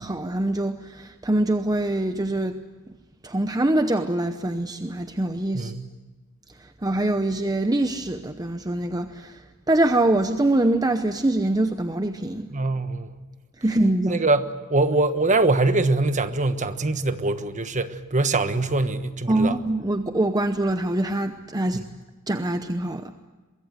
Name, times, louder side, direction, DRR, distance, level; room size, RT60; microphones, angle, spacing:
voice 1, 0.0-2.6 3.2-5.7 6.8-9.4 9.7-12.5 13.6-14.2 19.3-21.8 22.3-23.1, right 1 dB, 20° right, 0.8 m, -24 dB
voice 2, 5.5-5.9 12.5-13.1 14.1-19.6, right 2 dB, 35° right, 1.3 m, -23 dB
23.5 x 22.5 x 8.0 m
head